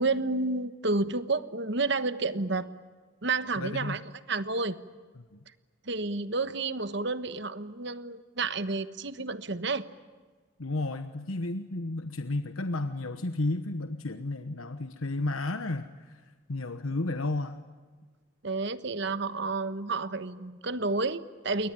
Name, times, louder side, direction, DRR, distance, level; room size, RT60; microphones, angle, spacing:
voice 1, 0.0-2.7 3.2-4.7 5.9-9.8 18.4-21.7, right 3 dB, 55° right, 12 dB, 1.2 m, -30 dB
voice 2, 3.6-4.0 5.3-5.4 10.6-17.6, left 2 dB, 90° left, 8 dB, 1.2 m, -32 dB
28.5 x 23.0 x 9.1 m, 1.5 s
head